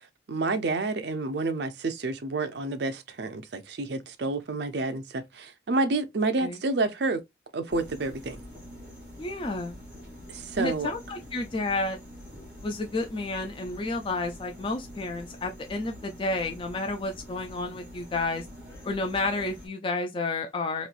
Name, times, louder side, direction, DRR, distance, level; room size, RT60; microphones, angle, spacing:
voice 1, 0.3-7.2 7.5-8.4 10.3-10.9, right 3 dB, 60° right, 0.5 m, -29 dB
sound 1, 7.7-19.7, equal, 5° right, 1.7 m, -46 dB
voice 2, 9.2-9.8 10.6-12.0 12.6-18.5 18.8-20.9, left 2 dB, 25° left, 0.3 m, -31 dB
3.1 x 2.9 x 2.4 m
head